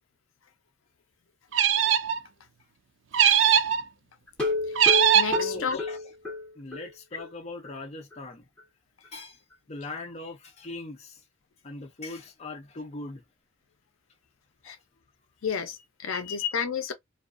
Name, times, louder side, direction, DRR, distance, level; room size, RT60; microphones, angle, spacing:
sound 1, 1.5-2.2 3.1-3.8 4.7-5.4, right 9 dB, 65° right, 0.4 m, -20 dB
voice 1, 3.3-3.7 5.3-6.0 6.6-8.4 9.0-9.4 9.7-11.2 11.6-13.2 14.6-14.7 16.1-16.3, left 3 dB, 30° left, 0.6 m, -40 dB
sound 2, 4.3-6.9 7.2-7.3 7.6-7.7 8.1-8.2, left 3 dB, 5° left, 1.1 m, -30 dB
voice 2, 5.1-5.8 14.6-14.8 15.4-16.9, left 7 dB, 85° left, 0.5 m, -31 dB
2.3 x 2.3 x 2.4 m
head